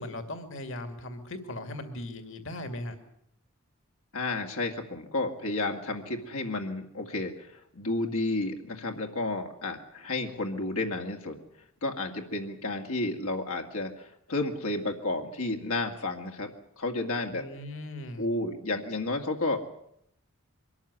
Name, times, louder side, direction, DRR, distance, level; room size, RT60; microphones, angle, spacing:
voice 1, 0.0-3.0 17.3-18.3, left 1 dB, 60° left, 8 dB, 2.2 m, -38 dB
voice 2, 4.1-11.4 11.8-17.5 18.2-19.7, left 2 dB, 80° left, 3 dB, 2.2 m, -32 dB
23.5 x 13.5 x 9.9 m, 0.73 s
head